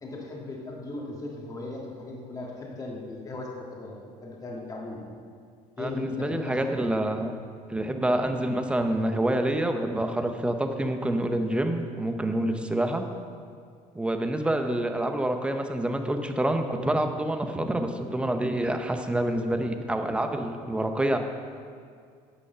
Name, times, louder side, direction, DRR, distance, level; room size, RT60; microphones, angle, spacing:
voice 1, 0.0-5.1 5.8-6.6, left 2 dB, 25° left, -2 dB, 1.9 m, -37 dB
voice 2, 5.8-7.3 7.7-13.1 13.9-21.2, right 1 dB, 5° right, 6 dB, 0.8 m, -27 dB
9.9 x 8.3 x 6.8 m, 2.2 s
cardioid pair, 145°, 15 cm